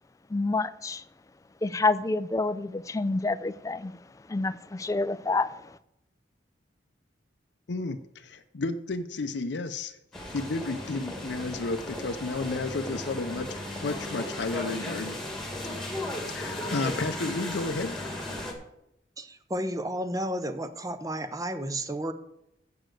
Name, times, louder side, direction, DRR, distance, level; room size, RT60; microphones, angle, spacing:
voice 1, 0.3-1.0 1.6-3.9 4.3-5.7, left 3 dB, 15° left, 14 dB, 0.3 m, -28 dB
voice 2, 7.7-10.0 10.3-15.2 16.2-18.1, left 3 dB, 65° left, 7 dB, 0.6 m, -32 dB
sound 1, 10.1-18.5, left 1 dB, ahead, 1.8 m, -36 dB
voice 3, 19.2-22.1, right 1 dB, 20° right, 11 dB, 0.6 m, -32 dB
7.8 x 7.1 x 7.6 m, 0.82 s
head